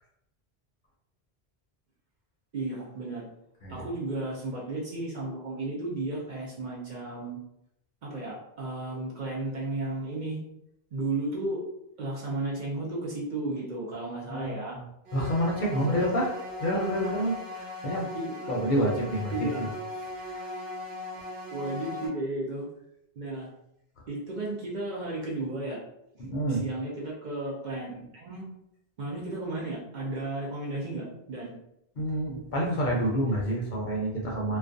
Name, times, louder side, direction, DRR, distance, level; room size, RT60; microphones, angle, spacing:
voice 1, 2.5-3.3 3.7-7.4 8.0-10.4 10.9-11.6 12.0-14.8 18.1-18.5 19.3-20.1 21.5-22.7 23.2-23.5 24.1-25.8 26.1-28.5 29.0-31.5, right 2 dB, 55° right, -3 dB, 0.6 m, -34 dB
voice 2, 14.3-14.8 15.1-16.3 16.6-18.1 18.5-19.5 20.3-20.4 26.2-26.6 32.0-34.6, equal, 55° left, -3 dB, 0.7 m, -28 dB
sound 1, 15.1-22.1, left 2 dB, 85° right, 0.9 m, -38 dB
2.3 x 2.1 x 2.5 m, 0.80 s
omnidirectional pair, 1.1 m